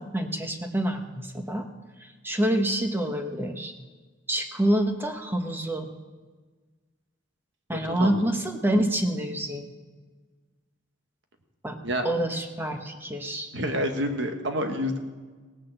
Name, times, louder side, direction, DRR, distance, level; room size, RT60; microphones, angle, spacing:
voice 1, 0.0-1.7 2.0-3.7 4.3-5.9 7.7-9.7 11.6-11.8 12.0-13.5, right 1 dB, 10° right, 5 dB, 1.0 m, -27 dB
voice 2, 7.7-8.2 11.8-12.1 13.5-15.0, equal, 60° right, 5 dB, 1.5 m, -28 dB
17.5 x 6.5 x 7.7 m, 1.4 s
head